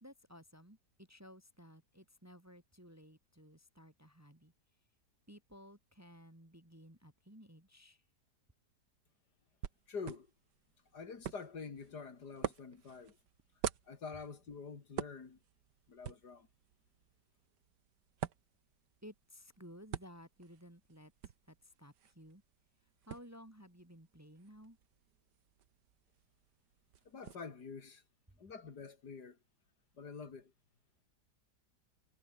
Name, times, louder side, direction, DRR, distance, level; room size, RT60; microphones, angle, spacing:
voice 1, 0.0-4.5 5.3-8.0 19.0-22.4 23.1-24.8 28.3-28.4, equal, 10° right, 2.0 m, -56 dB
sound 1, 9.6-27.3, right 9 dB, 90° right, 1.8 m, -48 dB
voice 2, 9.9-10.3 10.9-13.2 13.9-15.4 15.9-16.5 27.0-28.0 28.4-29.4 30.0-30.5, left 5 dB, 70° left, 3.1 m, -47 dB
omnidirectional pair, 1.8 m